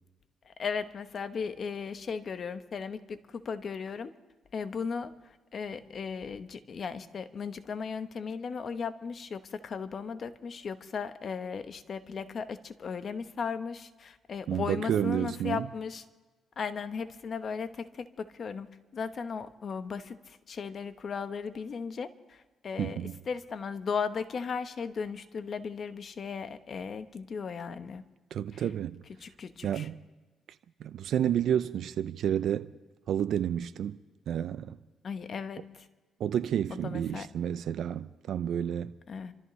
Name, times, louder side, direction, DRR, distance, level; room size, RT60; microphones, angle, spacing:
voice 1, 0.5-4.1 4.5-5.2 5.5-16.0 16.6-18.7 18.9-22.4 22.6-28.0 28.5-28.6 29.2-29.9 35.0-35.8 36.8-37.3 39.1-39.3, left 5 dB, 50° left, 1.0 m, -36 dB
voice 2, 14.5-15.7 22.8-23.2 28.3-29.0 29.6-30.0 30.8-32.7 33.1-34.0 34.3-34.8 36.2-39.0, right 9 dB, 70° right, 0.5 m, -30 dB
28.0 x 14.0 x 3.2 m
cardioid pair, 90°, 0 cm